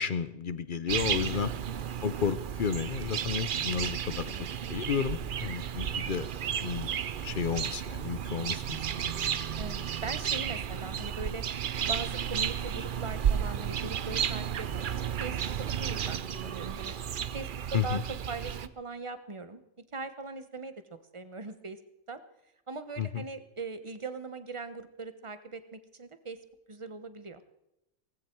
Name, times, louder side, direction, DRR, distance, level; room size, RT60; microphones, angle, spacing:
voice 1, 0.0-1.5 2.0-6.3 6.6-6.9 7.2-9.3 17.7-18.0 23.0-23.2, left 7 dB, 50° left, 14 dB, 0.8 m, -32 dB
voice 2, 0.9-1.2 4.2-4.5 9.6-11.4 11.9-14.8 15.2-16.9 17.3-18.0 18.3-19.6 19.9-20.7 21.1-21.8 22.1-22.2 22.7-26.4 26.7-27.4, right 3 dB, 25° right, 11 dB, 1.0 m, -40 dB
sound 1, 0.9-18.7, right 8 dB, 50° right, 0.7 m, -33 dB
17.5 x 16.0 x 4.5 m, 0.88 s
omnidirectional pair, 1.3 m